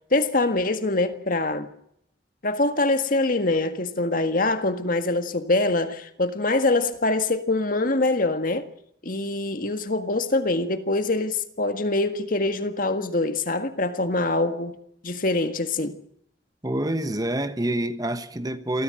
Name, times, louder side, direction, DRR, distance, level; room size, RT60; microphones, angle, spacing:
voice 1, 0.1-1.7 2.4-8.7 9.0-14.8 15.0-16.0, left 2 dB, 50° left, 1.7 m, -24 dB
voice 2, 16.6-18.8, right 1 dB, 20° right, 1.3 m, -27 dB
27.0 x 14.0 x 7.7 m
head